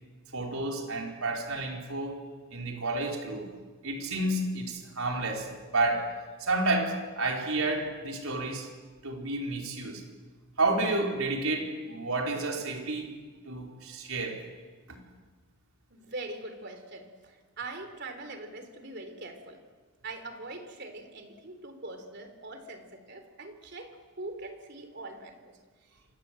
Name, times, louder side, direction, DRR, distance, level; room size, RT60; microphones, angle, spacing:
voice 1, 0.3-3.5 3.8-6.1 6.4-8.7 9.0-10.0 10.6-13.2 13.5-14.4 14.9-15.0, right 2 dB, 80° right, 1 dB, 4.5 m, -30 dB
voice 2, 15.9-19.6 20.0-26.0, right 2 dB, 50° right, 7 dB, 3.5 m, -43 dB
28.0 x 24.0 x 7.8 m, 1.4 s
head